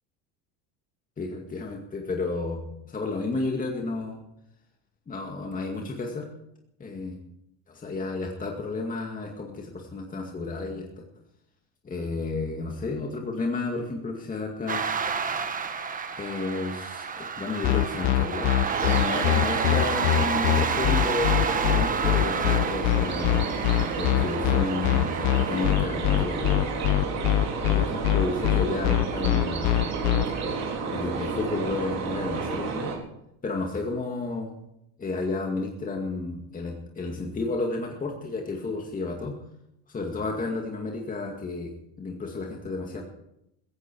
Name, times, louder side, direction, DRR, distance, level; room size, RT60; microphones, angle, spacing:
voice 1, 1.2-4.2 5.1-6.3 6.8-7.2 7.7-11.0 11.8-14.8 16.2-23.4 23.9-26.6 27.7-29.7 30.4-32.9 33.4-34.6 35.0-39.4 39.9-41.7 42.0-43.0, left 3 dB, 20° left, 1 dB, 2.2 m, -32 dB
sound 1, 14.7-25.7, right 6 dB, 20° right, 1.2 m, -30 dB
sound 2, 17.6-30.2, left 15 dB, 45° left, 0.7 m, -23 dB
sound 3, 18.6-33.0, right 5 dB, 40° right, 4.1 m, -31 dB
16.0 x 16.0 x 4.7 m, 0.80 s
cardioid pair, 140°, 40 cm